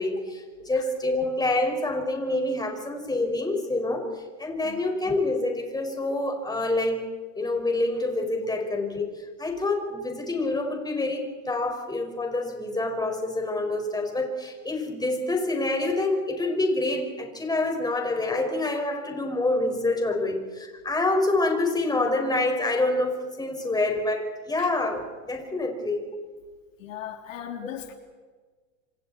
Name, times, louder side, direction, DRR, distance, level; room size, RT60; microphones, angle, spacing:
voice 1, 0.0-7.1 7.4-26.1, left 2 dB, 10° left, 3 dB, 5.8 m, -27 dB
voice 2, 26.8-27.9, left 10 dB, 80° left, 5 dB, 3.3 m, -38 dB
28.0 x 26.5 x 4.5 m, 1.4 s
hypercardioid pair, 105°, 39 cm